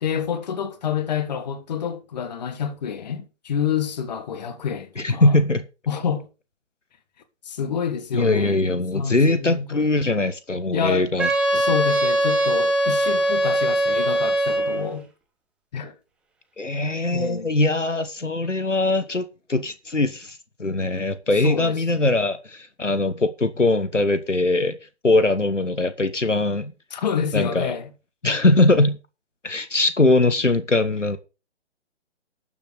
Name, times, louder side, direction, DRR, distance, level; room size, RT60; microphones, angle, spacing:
voice 1, 0.0-5.4 5.9-6.3 7.5-8.6 8.9-9.9 10.7-11.1 11.5-15.1 15.7-15.9 17.1-17.6 21.4-22.1 26.9-27.9, left 7 dB, 35° left, 1.9 m, -28 dB
voice 2, 5.0-5.6 8.1-11.6 16.6-24.8 25.0-26.7 27.3-27.7 28.2-29.0 29.4-31.2, left 2 dB, 85° left, 1.3 m, -21 dB
Wind instrument woodwind instrument, 11.2-14.9, right 1 dB, 5° right, 1.1 m, -21 dB
12.5 x 7.3 x 5.2 m
figure-of-eight pair, 135°, 36 cm